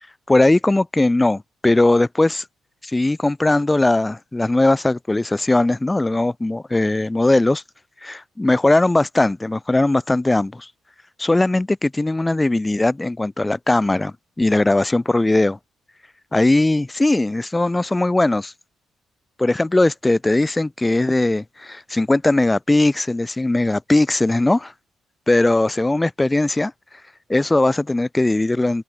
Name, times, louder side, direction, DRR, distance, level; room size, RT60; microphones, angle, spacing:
voice 1, 0.3-2.4 2.8-7.6 8.0-10.7 11.2-15.6 16.3-18.5 19.4-24.7 25.3-26.7 27.3-28.8, left 2 dB, 15° left, 0.4 m, -19 dB
cardioid pair, 90°, 0 cm